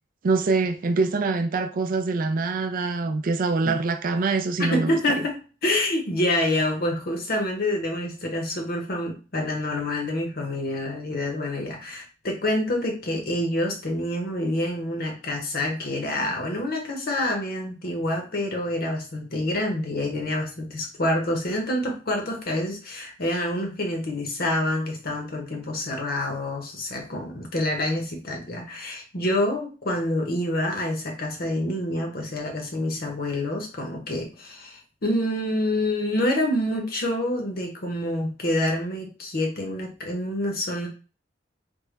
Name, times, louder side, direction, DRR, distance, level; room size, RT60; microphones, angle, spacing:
voice 1, 0.2-5.0, right 3 dB, 50° right, 0.4 m, -24 dB
voice 2, 4.6-40.9, left 1 dB, 55° left, 0.9 m, -27 dB
3.5 x 2.2 x 3.2 m
head